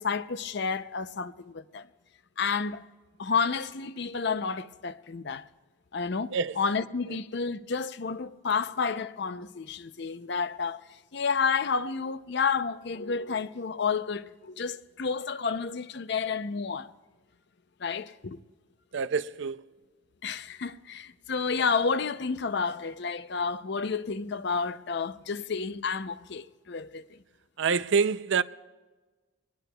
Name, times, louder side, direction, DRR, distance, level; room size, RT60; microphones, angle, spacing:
voice 1, 0.0-1.9 2.4-2.8 3.2-5.4 5.9-10.8 11.1-16.9 17.8-18.4 20.2-27.2, left 5 dB, 55° left, 0.5 m, -30 dB
voice 2, 6.3-6.6 18.9-19.6 27.6-28.4, right 5 dB, 60° right, 0.5 m, -26 dB
24.0 x 19.5 x 2.3 m
head